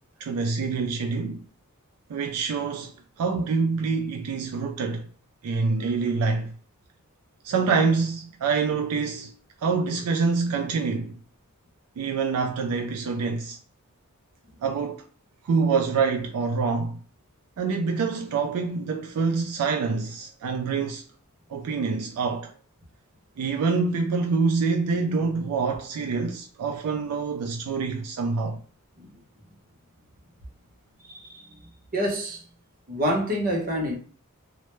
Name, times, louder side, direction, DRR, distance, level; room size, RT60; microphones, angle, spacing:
voice 1, 0.2-1.4 2.1-2.9 3.2-5.0 5.4-6.5 7.4-9.3 9.6-11.2 12.0-13.6 14.6-15.0 15.4-17.0 17.6-21.0 21.5-22.5 23.4-28.6, right 4 dB, 75° right, 0.3 m, -26 dB
voice 2, 31.0-32.4 32.9-34.0, equal, 40° right, 0.7 m, -28 dB
2.1 x 2.1 x 3.0 m
head